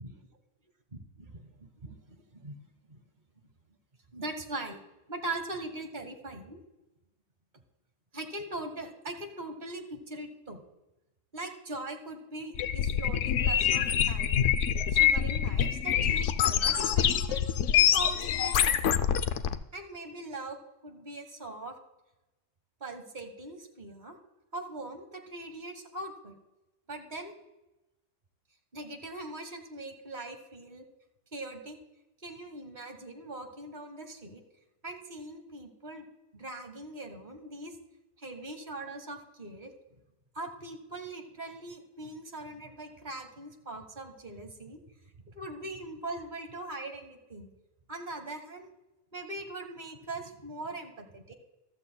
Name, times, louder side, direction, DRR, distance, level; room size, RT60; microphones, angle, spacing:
voice 1, 0.9-3.0 4.1-4.8 5.1-6.6 8.1-10.6 11.3-14.6 14.9-17.4 17.9-19.0 19.7-20.6 20.8-21.7 22.8-24.2 24.5-26.4 26.9-27.3 28.7-30.8 31.3-31.8 32.2-34.4 34.8-36.0 36.3-37.7 38.2-39.7 40.3-44.8 45.2-47.5 47.9-48.7 49.1-51.3, right 2 dB, 40° right, 5 dB, 1.5 m, -41 dB
sound 1, 12.5-19.5, left 9 dB, 80° left, 0.9 m, -25 dB
15.0 x 12.5 x 2.2 m, 0.98 s
omnidirectional pair, 1.3 m